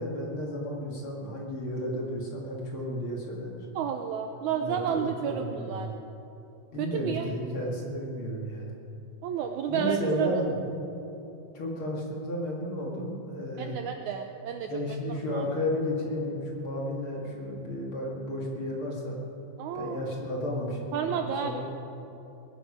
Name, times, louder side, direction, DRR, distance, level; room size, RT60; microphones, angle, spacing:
voice 1, 0.0-3.7 4.5-5.9 6.7-8.7 9.7-10.6 11.5-13.8 14.6-19.2 19.7-21.7, left 1 dB, 45° left, -2 dB, 2.4 m, -33 dB
voice 2, 3.8-5.9 6.8-7.3 9.2-10.3 13.6-15.0 15.3-15.5 19.6-20.1 20.9-21.8, right 8 dB, 80° right, 5 dB, 1.8 m, -31 dB
21.5 x 11.0 x 5.0 m, 2.9 s
omnidirectional pair, 4.0 m